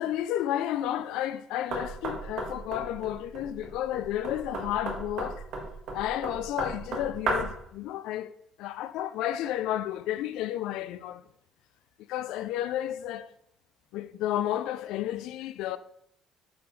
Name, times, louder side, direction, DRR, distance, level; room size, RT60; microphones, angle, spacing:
voice 1, 0.0-5.4 5.9-8.3 8.6-11.2 12.1-13.3 13.9-15.8, left 12 dB, 85° left, 0.3 m, -32 dB
Knock, 1.7-7.6, right 3 dB, 60° right, 1.6 m, -35 dB
8.2 x 5.0 x 3.1 m
cardioid pair, 160°, 0 cm